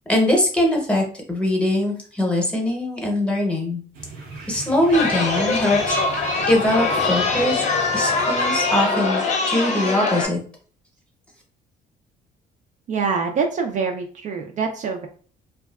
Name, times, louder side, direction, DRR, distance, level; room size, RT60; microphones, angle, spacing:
voice 1, 0.1-3.8 4.5-7.7 7.9-10.4, left 1 dB, 5° left, 0 dB, 0.8 m, -22 dB
sound 1, 3.9-9.0, right 3 dB, 85° right, 0.7 m, -39 dB
Chatter, 4.9-10.2, left 3 dB, 45° left, 0.6 m, -22 dB
voice 2, 12.9-15.1, right 5 dB, 45° right, 3 dB, 0.4 m, -25 dB
2.7 x 2.3 x 2.3 m, 0.43 s
cardioid pair, 110°, 17 cm